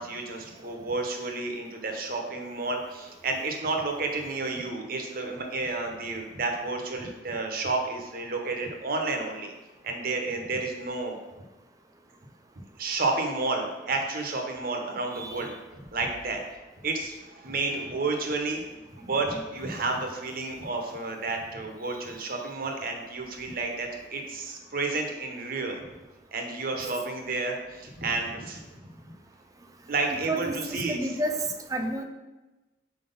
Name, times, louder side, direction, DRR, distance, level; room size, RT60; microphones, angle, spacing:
voice 1, 0.0-9.5 9.8-11.2 12.8-15.5 15.9-16.4 16.8-18.6 19.0-25.9 26.3-28.9 29.9-31.1, right 3 dB, 55° right, 2 dB, 0.9 m, -31 dB
voice 2, 30.3-31.4 31.7-32.0, right 1 dB, 20° right, 5 dB, 0.5 m, -30 dB
4.7 x 3.9 x 5.3 m, 1.1 s
head